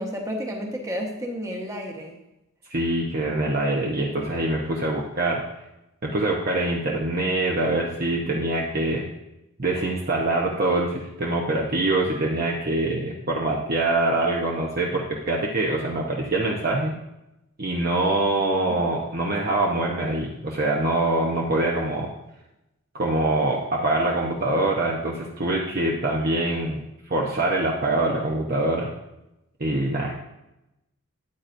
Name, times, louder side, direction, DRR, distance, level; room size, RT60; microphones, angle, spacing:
voice 1, 0.0-2.2 18.7-18.8, equal, 15° right, 1 dB, 1.2 m, -31 dB
voice 2, 2.7-5.4 6.0-9.1 9.6-16.9 17.6-22.1 22.9-26.8 27.1-28.9 29.6-30.1, right 2 dB, 40° right, -2 dB, 0.9 m, -24 dB
13.0 x 9.0 x 2.6 m, 0.91 s
head